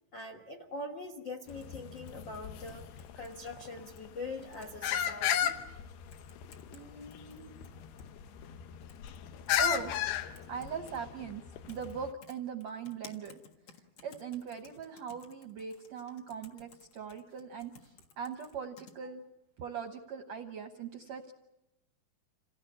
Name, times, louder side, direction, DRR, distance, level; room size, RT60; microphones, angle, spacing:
voice 1, 0.1-5.6, left 2 dB, 70° left, 4 dB, 1.1 m, -43 dB
sound 1, 1.5-12.1, left 10 dB, 85° left, 3.1 m, -36 dB
sound 2, 1.5-4.0 4.4-5.1 5.5-5.6 6.1-6.8 7.1-8.1 8.9-9.2 9.5-11.0 11.7-11.9 12.2-18.9, left 5 dB, 50° left, 2.1 m, -57 dB
voice 2, 6.7-7.6 9.5-9.9 10.5-11.4 11.7-13.4 14.0-19.2 19.6-21.3, right 7 dB, 70° right, 5 dB, 1.6 m, -40 dB
27.5 x 17.0 x 8.6 m, 0.97 s
omnidirectional pair, 4.5 m